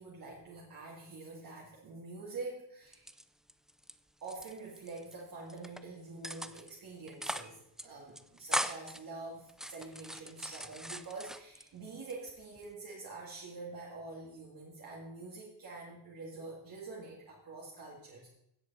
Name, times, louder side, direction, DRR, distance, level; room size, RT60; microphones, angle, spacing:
voice 1, 0.0-3.1 4.2-18.3, right 3 dB, 55° right, -4 dB, 2.2 m, -46 dB
sound 1, 2.9-3.9 4.2-5.1 5.5-5.8 6.2-6.8 7.1-7.5 7.8-7.9 8.2-9.0 9.5-11.7 12.1-12.7, equal, ahead, 0.3 m, -39 dB
16.0 x 8.1 x 4.2 m, 0.81 s
cardioid pair, 145°, 43 cm